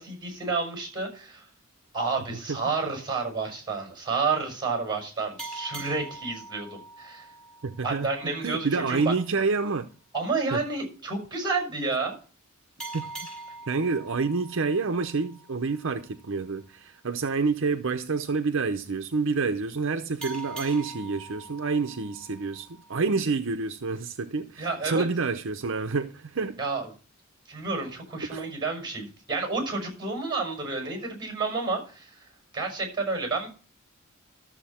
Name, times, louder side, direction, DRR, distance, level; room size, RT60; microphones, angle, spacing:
voice 1, 0.0-1.5 1.9-7.3 7.8-9.1 10.1-12.2 24.6-25.1 26.6-26.9 27.5-32.2 32.5-33.5, right 4 dB, 20° right, 5.9 m, -30 dB
sound 1, 5.4-8.6 12.8-16.0 20.2-23.2, right 3 dB, 5° left, 5.3 m, -43 dB
voice 2, 7.6-8.1 8.4-9.9 10.5-10.6 12.9-13.1 13.7-26.6 28.3-28.4, right 4 dB, 65° right, 0.7 m, -28 dB
13.5 x 7.2 x 4.3 m
head